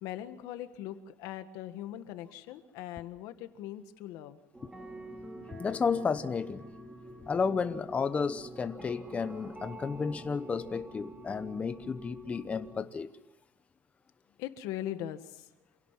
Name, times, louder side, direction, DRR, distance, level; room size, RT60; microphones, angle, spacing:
voice 1, 0.0-4.4 14.4-15.5, left 12 dB, 85° left, 1.6 m, -40 dB
sound 1, 4.5-12.8, right 1 dB, 10° right, 3.6 m, -47 dB
voice 2, 5.5-6.7 7.3-13.1, left 5 dB, 20° left, 0.8 m, -32 dB
27.5 x 17.5 x 7.4 m
cardioid pair, 145°, 6 cm